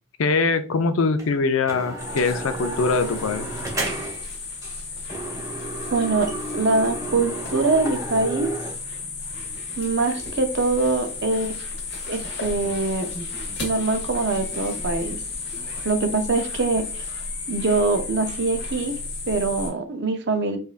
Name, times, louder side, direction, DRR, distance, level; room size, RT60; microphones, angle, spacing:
voice 1, 0.2-3.5, left 4 dB, 75° left, 10 dB, 0.5 m, -22 dB
sound 1, 1.2-1.3 1.7-4.3 4.6-4.8 5.1-8.7, right 2 dB, 15° right, 0.8 m, -32 dB
sound 2, 2.0-19.7, left 4 dB, 55° left, 1.1 m, -33 dB
voice 2, 5.9-6.3 6.5-8.5 9.8-11.6 12.1-13.1 13.6-15.2 15.8-17.0 17.5-18.9 19.3-20.6, right 3 dB, 55° right, 6 dB, 0.6 m, -23 dB
4.9 x 2.5 x 2.4 m, 0.37 s
head